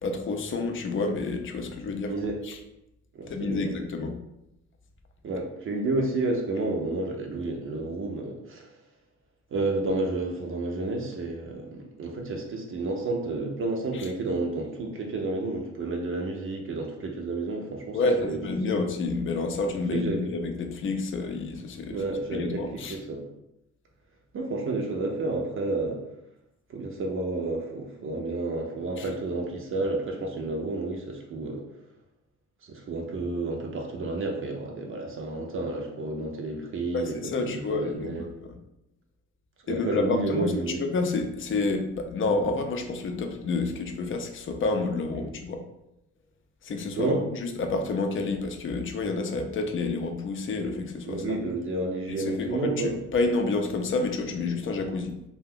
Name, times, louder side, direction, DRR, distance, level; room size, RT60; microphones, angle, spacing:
voice 1, 0.0-2.1 2.4-2.6 3.3-4.2 13.9-14.1 17.9-22.0 22.3-23.0 29.0-29.1 36.9-38.5 39.7-40.5 40.8-45.6 46.6-47.2 47.4-51.4 52.1-55.1, left 3 dB, 40° left, 5 dB, 0.5 m, -29 dB
voice 2, 2.0-2.4 3.1-3.8 5.2-8.7 9.5-18.0 18.2-18.4 19.9-20.3 21.8-23.2 24.3-26.0 26.7-31.6 32.6-38.3 39.7-40.8 45.1-45.3 47.0-47.2 51.0-52.9, right 2 dB, 40° right, 1 dB, 0.6 m, -30 dB
2.4 x 2.2 x 3.5 m, 0.87 s
supercardioid pair, 75°, 32 cm